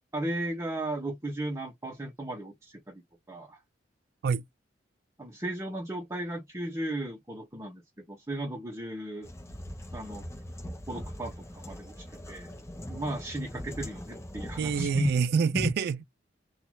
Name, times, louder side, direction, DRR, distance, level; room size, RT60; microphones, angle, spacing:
voice 1, 0.1-3.0 3.3-3.6 5.2-9.3 9.9-10.2 10.9-12.5 12.9-15.1 15.5-15.6, right 1 dB, 15° right, 0.9 m, -35 dB
sound 1, 9.2-15.2, equal, 15° left, 0.8 m, -42 dB
voice 2, 14.6-16.1, right 6 dB, 60° right, 0.3 m, -27 dB
2.8 x 2.3 x 3.1 m
head